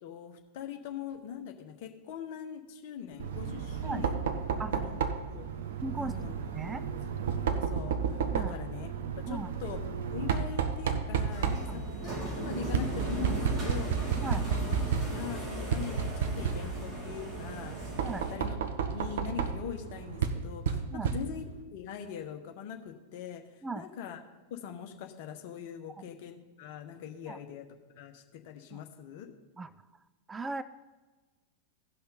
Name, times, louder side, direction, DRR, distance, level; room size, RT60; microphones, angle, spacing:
voice 1, 0.0-4.2 4.7-5.4 5.9-6.3 7.5-9.8 10.1-11.8 12.2-14.8 15.1-18.6 18.9-21.4 21.7-24.2 24.5-27.6 27.9-29.4, left 8 dB, 50° left, 5 dB, 1.1 m, -42 dB
Knock, 3.2-21.6, right 6 dB, 60° right, 0.8 m, -33 dB
voice 2, 5.8-6.1 6.5-6.8 8.3-8.6 9.3-9.5 11.6-11.8 14.2-14.4 18.0-18.2 20.9-21.1 23.6-23.9 27.3-27.4 28.7-28.8 29.6-29.7 30.3-30.6, right 3 dB, 15° right, 13 dB, 0.3 m, -37 dB
sound 1, 11.3-18.3, right 1 dB, 30° right, 2.3 m, -37 dB
16.5 x 5.7 x 3.9 m, 1.3 s
figure-of-eight pair, 90°, 0 cm